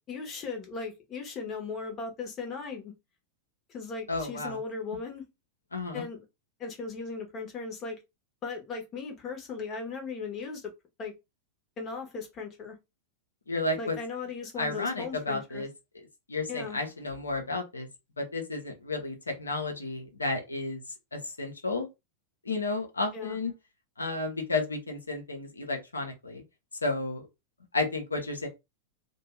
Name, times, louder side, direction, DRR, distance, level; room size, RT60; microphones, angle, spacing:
voice 1, 0.1-2.9 3.7-5.2 5.9-6.2 6.6-8.0 8.4-10.7 11.0-11.1 11.8-12.7 13.8-15.6 16.5-16.8 23.1-23.4, left 4 dB, 30° left, 1.0 m, -37 dB
voice 2, 4.1-4.6 5.7-6.0 13.5-14.0 14.6-15.7 16.3-17.9 18.2-20.8 21.1-21.9 22.4-23.5 24.0-26.4 26.8-27.3 27.7-28.5, left 3 dB, 80° left, 0.7 m, -32 dB
2.6 x 2.2 x 3.2 m
figure-of-eight pair, 90°, 0 cm